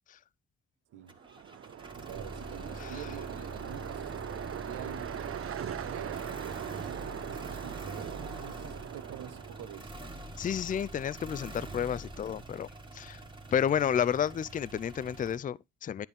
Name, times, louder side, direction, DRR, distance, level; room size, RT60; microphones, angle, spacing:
sound 1, 1.1-15.4, right 2 dB, 15° right, 1.7 m, -45 dB
sound 2, 1.1-10.1, right 9 dB, 45° right, 0.7 m, -41 dB
voice 1, 1.9-10.0, right 9 dB, 85° right, 1.3 m, -47 dB
voice 2, 10.4-13.2 13.5-16.1, left 8 dB, 30° left, 0.4 m, -31 dB
10.5 x 5.0 x 3.5 m
cardioid pair, 90°, 30 cm